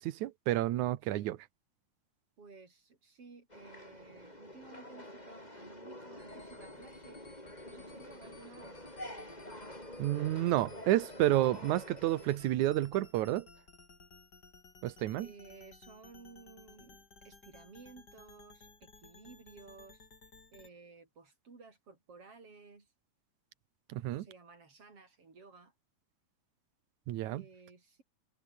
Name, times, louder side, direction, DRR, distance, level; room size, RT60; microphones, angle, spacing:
voice 1, 0.0-1.4 10.0-13.5 14.8-15.3 23.9-24.2 27.1-27.4, right 14 dB, 80° right, 2.4 m, -30 dB
voice 2, 1.0-1.4 2.4-7.3 7.7-8.9 15.2-20.1 20.5-22.9 24.1-25.7 27.3-28.0, right 4 dB, 50° right, 5.5 m, -55 dB
sound 1, 3.5-12.4, left 1 dB, 10° left, 8.1 m, -48 dB
sound 2, 6.2-20.7, left 3 dB, 30° left, 4.3 m, -58 dB
omnidirectional pair, 3.5 m